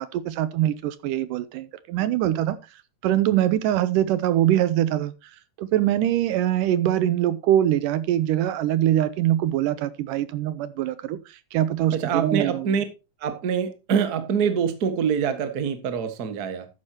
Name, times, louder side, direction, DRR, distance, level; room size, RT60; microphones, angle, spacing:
voice 1, 0.0-2.6 3.0-5.1 5.6-12.7, right 12 dB, 80° right, 2.3 m, -23 dB
voice 2, 11.9-12.8 13.2-16.7, right 7 dB, 40° right, 1.4 m, -25 dB
13.0 x 9.8 x 2.9 m
omnidirectional pair, 3.9 m